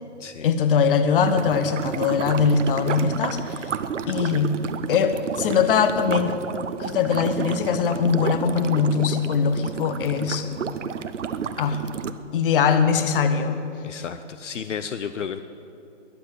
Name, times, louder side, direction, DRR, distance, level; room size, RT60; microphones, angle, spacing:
voice 1, 0.4-3.7 4.1-4.6 4.9-6.4 6.8-10.5 11.6-11.8 12.3-13.6, left 6 dB, 45° left, 10 dB, 1.4 m, -21 dB
sound 1, 1.2-12.1, right 7 dB, 75° right, 1.0 m, -31 dB
voice 2, 13.8-15.4, left 7 dB, 75° left, 11 dB, 0.8 m, -32 dB
21.5 x 7.9 x 8.2 m, 2.8 s
hypercardioid pair, 140°, 37 cm